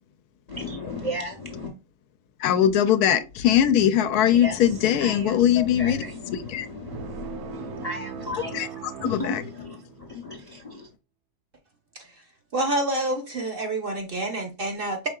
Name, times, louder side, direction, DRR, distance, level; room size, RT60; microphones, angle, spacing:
voice 1, 0.5-1.7 4.3-10.9, left 2 dB, 45° left, 0.5 m, -35 dB
voice 2, 2.4-6.0 6.5-6.7 8.5-8.7 9.1-9.3, left 10 dB, 80° left, 1.1 m, -20 dB
sound 1, 6.8-10.2, right 8 dB, 80° right, 1.1 m, -39 dB
voice 3, 12.5-15.1, right 1 dB, 45° right, 0.8 m, -28 dB
5.6 x 3.6 x 2.3 m
omnidirectional pair, 1.6 m